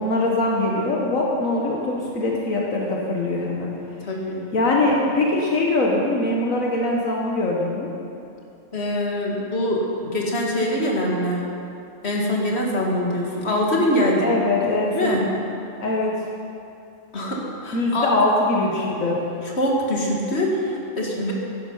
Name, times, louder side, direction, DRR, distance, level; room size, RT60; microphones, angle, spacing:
voice 1, 0.0-3.7 4.5-7.9 14.2-15.2 15.8-16.1 17.7-19.2, left 2 dB, 80° left, -2 dB, 1.9 m, -22 dB
voice 2, 4.0-4.4 8.7-11.4 12.0-14.3 14.6-15.3 17.1-18.1 19.6-21.3, left 1 dB, 50° left, -2 dB, 2.4 m, -24 dB
16.0 x 11.5 x 5.6 m, 2.6 s
omnidirectional pair, 1.4 m